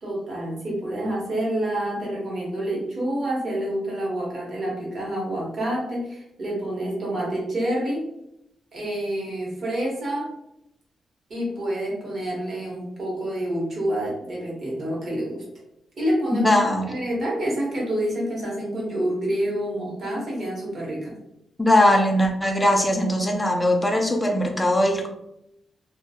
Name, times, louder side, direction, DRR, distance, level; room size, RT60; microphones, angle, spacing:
voice 1, 0.0-8.0 8.7-10.3 11.3-15.4 16.0-16.5 16.9-21.1, right 1 dB, 50° right, -4 dB, 1.0 m, -28 dB
voice 2, 16.3-16.9 21.6-25.1, left 1 dB, 10° left, 3 dB, 0.4 m, -20 dB
2.3 x 2.3 x 2.7 m, 0.82 s
wide cardioid pair, 135°, 0 cm